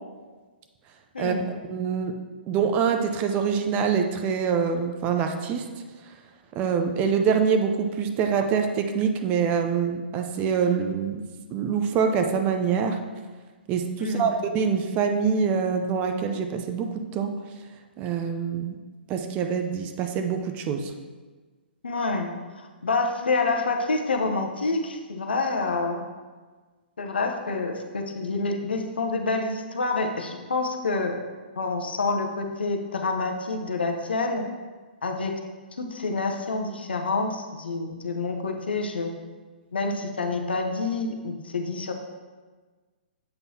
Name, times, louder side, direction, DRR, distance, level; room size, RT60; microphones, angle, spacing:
voice 1, 1.1-1.5 14.0-14.4 21.8-26.0 27.0-31.2 31.6-34.4 35.0-35.3 35.8-39.1 39.7-41.9, left 3 dB, 75° left, 3 dB, 0.8 m, -27 dB
voice 2, 1.7-2.1 2.5-5.7 6.5-11.2 11.5-13.0 13.7-17.4 18.0-18.8 19.1-20.9, right 6 dB, 25° right, 5 dB, 0.5 m, -25 dB
7.9 x 5.4 x 2.8 m, 1.4 s
figure-of-eight pair, 120°, 6 cm